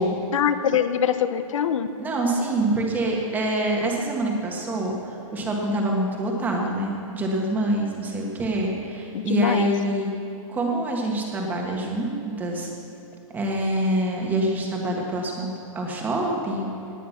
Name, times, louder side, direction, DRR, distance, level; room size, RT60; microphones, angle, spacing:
voice 1, 0.3-1.9 9.1-9.7, left 9 dB, 70° left, 12 dB, 0.9 m, -23 dB
voice 2, 2.0-10.1 10.5-12.7 13.3-15.5 15.7-16.7, right 1 dB, 10° right, 0 dB, 1.5 m, -25 dB
18.5 x 9.1 x 5.9 m, 3.0 s
hypercardioid pair, 165°, 18 cm